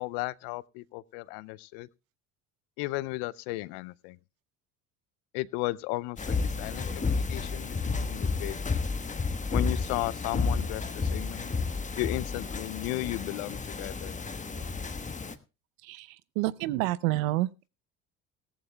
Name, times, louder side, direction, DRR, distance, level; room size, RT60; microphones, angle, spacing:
voice 1, 0.0-1.9 2.8-4.2 5.3-8.6 9.5-11.5 12.0-14.1, left 21 dB, 70° left, 0.6 m, -35 dB
sound 1, 6.2-15.3, left 4 dB, 20° left, 1.1 m, -31 dB
voice 2, 16.4-17.7, right 17 dB, 75° right, 0.7 m, -28 dB
17.0 x 14.5 x 2.2 m
hypercardioid pair, 70°, 41 cm